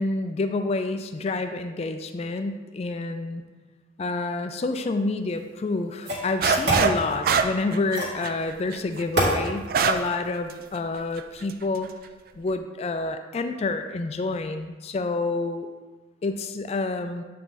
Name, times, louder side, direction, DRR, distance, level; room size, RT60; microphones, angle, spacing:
voice 1, 0.0-3.4 4.0-11.9 12.4-15.7 16.2-17.2, left 3 dB, 35° left, 8 dB, 0.3 m, -28 dB
sound 1, 5.3-5.4 6.0-6.9 7.9-8.2 9.1-9.4, right 1 dB, 70° right, 1.8 m, -25 dB
sound 2, 6.4-7.0 7.2-10.1 10.5-10.6 11.2-11.5, right 5 dB, 50° right, 0.3 m, -23 dB
8.0 x 3.6 x 4.0 m, 1.3 s
head